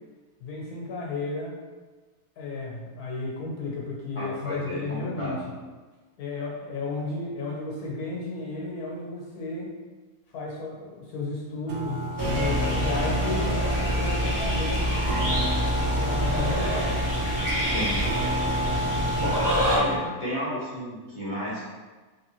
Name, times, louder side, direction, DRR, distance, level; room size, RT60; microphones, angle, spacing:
voice 1, 0.4-1.6 2.4-5.4 6.2-9.8 10.3-14.9 16.0-17.1, left 3 dB, 75° left, -3 dB, 1.4 m, -33 dB
voice 2, 4.1-5.4 17.6-18.0 19.2-21.6, equal, 25° left, -9 dB, 0.8 m, -33 dB
sound 1, 11.7-20.0, equal, 75° right, 1.1 m, -30 dB
sound 2, 12.2-19.8, equal, 15° right, 0.8 m, -26 dB
3.3 x 3.0 x 3.0 m, 1.3 s
omnidirectional pair, 1.6 m